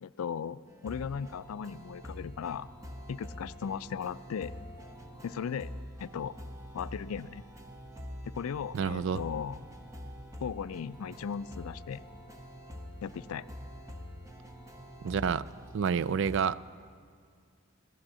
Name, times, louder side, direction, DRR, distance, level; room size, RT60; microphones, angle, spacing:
voice 1, 0.0-2.7 3.1-4.5 5.2-5.7 6.0-6.3 6.7-7.4 8.2-9.6 10.4-12.0 13.0-13.4, left 7 dB, 85° left, 17 dB, 0.4 m, -37 dB
sound 1, 0.7-16.4, equal, 15° right, 1.0 m, -46 dB
voice 2, 8.7-9.2 15.0-15.4 15.7-16.6, right 6 dB, 60° right, 16 dB, 0.3 m, -28 dB
16.0 x 11.5 x 7.4 m, 2.1 s
head